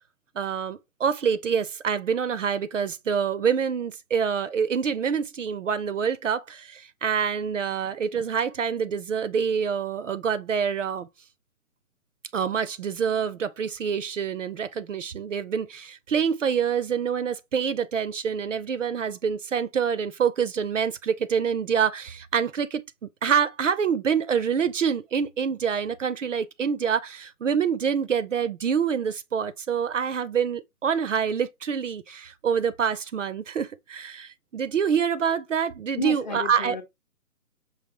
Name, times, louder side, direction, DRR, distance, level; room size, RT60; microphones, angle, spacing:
voice 1, 0.4-11.1 12.3-36.8, right 7 dB, 55° right, 0.6 m, -26 dB
voice 2, 36.0-36.8, left 4 dB, 30° left, 0.8 m, -32 dB
5.6 x 2.8 x 2.9 m
figure-of-eight pair, 145°, 45 cm